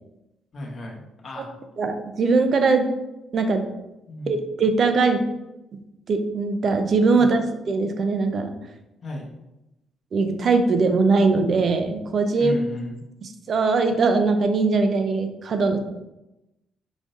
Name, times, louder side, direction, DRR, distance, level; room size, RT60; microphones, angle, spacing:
voice 1, 0.5-1.5 4.1-4.5 7.1-7.3 9.0-9.3 12.3-13.0, left 1 dB, 45° left, -2 dB, 1.1 m, -34 dB
voice 2, 1.8-2.9 3.3-3.6 4.3-5.2 6.1-8.5 10.1-12.6 13.5-15.8, right 4 dB, 50° right, 7 dB, 0.6 m, -21 dB
5.1 x 3.7 x 2.6 m, 0.93 s
cardioid pair, 90°, 0 cm